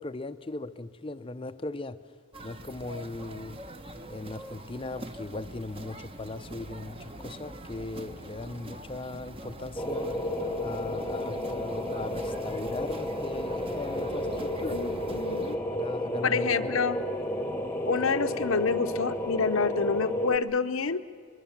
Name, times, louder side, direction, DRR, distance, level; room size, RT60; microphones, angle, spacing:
voice 1, 0.0-2.0 2.4-3.6 4.1-10.1 10.6-14.8 15.7-16.8, left 2 dB, 25° left, 12 dB, 0.6 m, -38 dB
sound 1, 2.3-15.6, right 1 dB, 25° right, 1.1 m, -43 dB
sound 2, 9.8-20.4, left 1 dB, 10° left, 1.1 m, -32 dB
voice 2, 14.7-15.6 16.2-17.0 17.9-21.0, left 5 dB, 75° left, 8 dB, 0.8 m, -28 dB
23.5 x 23.5 x 7.2 m, 2.2 s
head